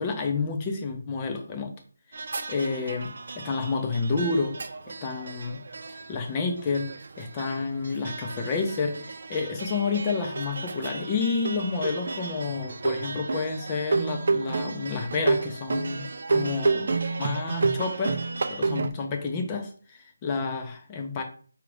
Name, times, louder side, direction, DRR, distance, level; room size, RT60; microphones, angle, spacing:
voice 1, 0.0-1.7 2.5-4.6 5.0-5.6 6.1-18.2 18.5-21.2, left 4 dB, 20° left, 0.7 m, -30 dB
sound 1, 2.1-18.9, right 4 dB, 55° right, 0.4 m, -31 dB
4.8 x 2.4 x 3.3 m
figure-of-eight pair, 160°, 0 cm